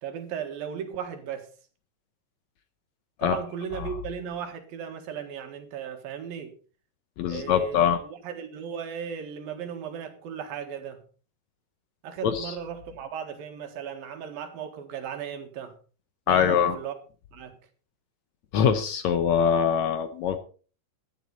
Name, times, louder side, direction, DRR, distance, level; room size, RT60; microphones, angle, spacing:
voice 1, 0.0-1.5 3.2-6.6 7.3-11.0 12.0-15.8 16.3-16.9 17.3-17.5, right 8 dB, 90° right, 3.5 m, -36 dB
voice 2, 7.2-8.0 12.2-12.6 16.3-16.8 18.5-20.4, left 8 dB, 70° left, 1.8 m, -23 dB
14.5 x 11.5 x 4.2 m
omnidirectional pair, 4.0 m